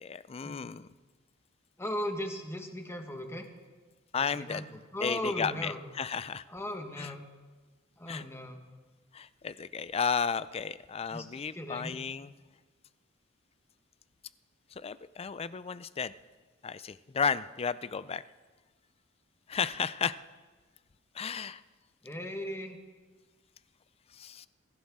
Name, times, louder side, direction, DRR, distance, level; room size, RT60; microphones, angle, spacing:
voice 1, 0.0-0.9 4.1-4.6 5.0-6.4 7.0-7.1 8.1-8.2 9.1-12.3 14.8-16.1 16.6-18.2 19.5-20.1 21.2-21.6 24.2-24.5, left 6 dB, 30° left, 16 dB, 0.4 m, -33 dB
voice 2, 1.8-3.5 4.2-5.8 6.5-7.2 8.0-8.6 11.1-11.3 11.5-12.0 22.0-22.8, equal, 15° left, 4 dB, 1.4 m, -37 dB
21.5 x 15.5 x 3.6 m, 1.3 s
head